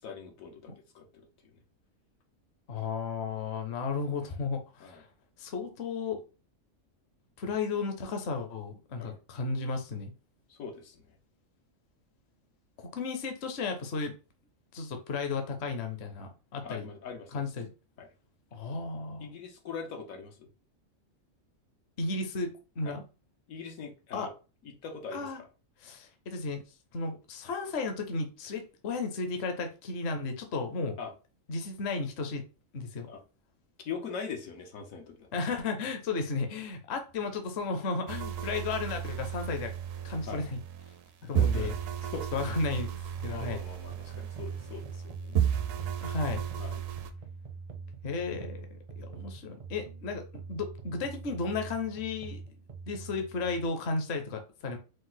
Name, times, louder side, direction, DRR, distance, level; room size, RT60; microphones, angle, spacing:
voice 1, 0.0-1.6 4.8-5.0 9.0-9.2 10.5-11.1 16.6-17.4 18.0-18.1 19.2-20.5 22.8-23.0 23.5-24.3 24.6-25.3 31.0-31.1 33.0-33.2 33.8-35.3 40.3-40.4 41.4-41.7 42.0-42.3 43.2-45.5 46.6-46.8, left 5 dB, 85° left, 1.3 m, -42 dB
voice 2, 2.7-5.1 5.4-6.2 7.4-10.1 12.8-14.1 14.7-16.9 17.3-17.7 18.5-19.3 22.0-22.5 22.8-23.0 24.1-24.3 25.1-25.4 25.8-26.6 26.9-31.0 31.5-32.4 32.7-33.1 35.3-39.7 40.0-40.6 41.3-41.7 42.3-42.9 43.2-43.6 46.0-46.4 48.0-48.7 49.0-52.4 52.9-54.8, left 4 dB, 55° left, 1.0 m, -34 dB
sound 1, 38.1-41.1 41.4-45.0 45.4-47.1, right 9 dB, 80° right, 1.0 m, -33 dB
sound 2, 42.6-53.7, right 4 dB, 45° right, 0.4 m, -44 dB
5.2 x 2.1 x 3.8 m
omnidirectional pair, 1.4 m